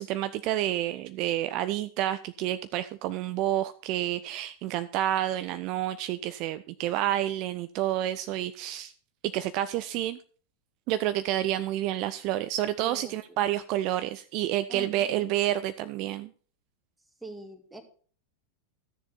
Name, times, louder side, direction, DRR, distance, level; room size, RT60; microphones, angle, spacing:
voice 1, 0.0-8.9 9.3-10.2 10.9-16.3, right 13 dB, 40° right, 13 dB, 0.5 m, -29 dB
voice 2, 12.8-13.2 14.7-15.3 17.2-17.8, right 2 dB, 5° right, 5 dB, 2.0 m, -43 dB
13.0 x 7.0 x 5.8 m, 0.44 s
figure-of-eight pair, 90°, 0 cm